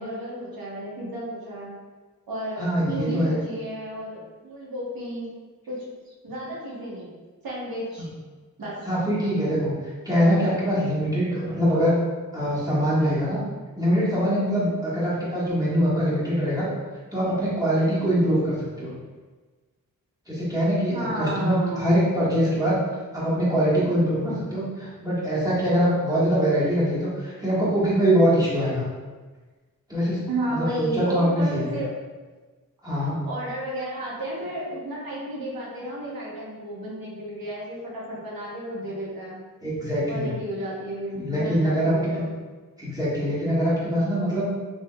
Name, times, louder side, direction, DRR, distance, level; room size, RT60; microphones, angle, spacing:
voice 1, 0.0-1.7 2.3-5.3 5.7-7.1 7.4-8.1 8.6-8.9 20.9-22.0 30.3-31.9 33.2-39.4 40.1-42.3, right 1 dB, 85° right, -5 dB, 1.0 m, -33 dB
voice 2, 2.6-3.4 8.0-8.1 8.8-9.7 10.0-12.0 12.3-13.4 13.8-16.7 17.1-18.9 20.3-22.8 23.1-28.9 29.9-30.2 30.5-31.8 32.8-33.2 39.6-40.3 41.1-42.2 42.8-44.5, equal, 10° right, -9 dB, 1.4 m, -23 dB
3.4 x 2.8 x 2.2 m, 1.3 s
cardioid pair, 50°, 35 cm